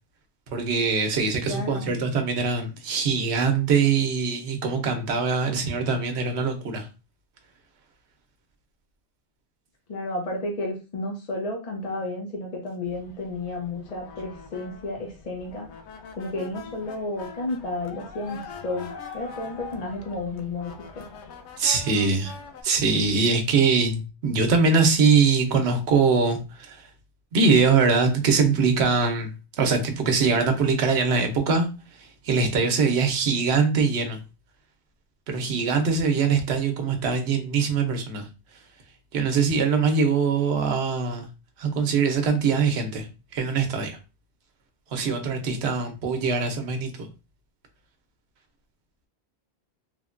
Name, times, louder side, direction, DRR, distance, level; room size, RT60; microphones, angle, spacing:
voice 1, 0.5-6.9 21.6-22.4 22.6-26.9 27.3-29.3 29.6-31.7 32.0-34.2 35.3-38.3 39.1-41.3 41.6-43.1 43.3-44.0 44.9-47.1, right 5 dB, 75° right, 0.9 m, -22 dB
voice 2, 1.5-2.0 9.9-15.7 16.1-21.0, left 2 dB, 45° left, 0.6 m, -32 dB
sound 1, 12.8-22.6, left 5 dB, 90° left, 0.9 m, -43 dB
3.3 x 2.1 x 2.4 m
omnidirectional pair, 1.1 m